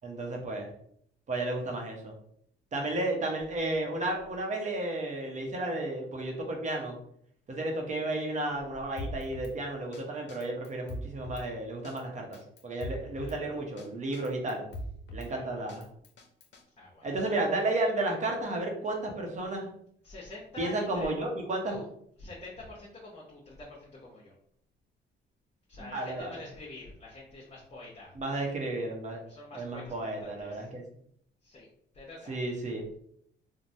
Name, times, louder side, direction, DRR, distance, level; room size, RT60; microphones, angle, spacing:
voice 1, 0.0-0.7 1.3-2.1 2.7-7.0 7.5-12.4 12.6-14.7 15.1-15.8 17.0-19.7 20.6-21.8 25.8-26.4 28.2-29.2 29.5-30.8 32.3-32.8, right 2 dB, 40° right, 1 dB, 0.8 m, -32 dB
Drum kit, 9.0-9.5 9.9-10.0 10.3-11.5 11.8-12.0 12.3-13.4 13.8-13.9 14.1-15.3 15.7-16.6, equal, 65° left, 0.6 m, -40 dB
voice 2, 16.8-17.4 20.0-21.1 21.7-21.9 22.2-24.3 25.7-28.1 29.3-30.7 31.4-31.7 31.9-32.4, left 2 dB, 30° left, -5 dB, 0.8 m, -46 dB
3.1 x 2.1 x 2.6 m, 0.67 s
cardioid pair, 90°, 20 cm